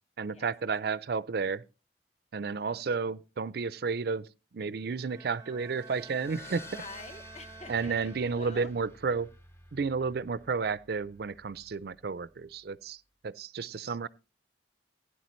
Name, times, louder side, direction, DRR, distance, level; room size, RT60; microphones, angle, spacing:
voice 1, 0.2-1.6 2.3-4.3 4.5-6.7 7.7-9.3 9.7-14.1, right 5 dB, 60° right, 0.5 m, -32 dB
voice 2, 2.5-2.8 6.7-8.7 10.0-10.1, left 3 dB, 40° left, 1.0 m, -48 dB
Bowed string instrument, 4.8-8.8, right 4 dB, 20° right, 0.6 m, -51 dB
sound 1, 5.5-12.6, left 2 dB, 15° left, 0.8 m, -53 dB
16.0 x 10.0 x 3.1 m
head